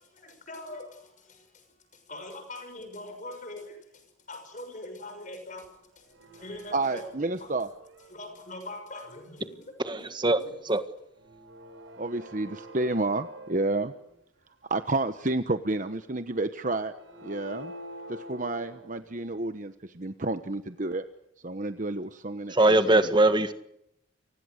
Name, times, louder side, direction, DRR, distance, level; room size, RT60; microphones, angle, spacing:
voice 1, 0.0-7.1 7.4-7.5 8.0-10.6, left 2 dB, 40° left, 6.2 m, -43 dB
sound 1, 5.6-5.7 5.9-8.4 9.0-9.3 11.1-14.2 14.6-14.7 16.8-19.4, equal, 90° right, 6.2 m, -47 dB
voice 2, 6.7-7.7 12.0-13.9 14.7-16.9 17.2-17.7 18.1-21.0 21.4-22.5 22.9-23.0, right 2 dB, 40° right, 1.1 m, -30 dB
voice 3, 9.9-10.4 10.7-10.8 22.5-23.5, right 2 dB, 25° right, 1.7 m, -21 dB
30.0 x 25.0 x 6.6 m
head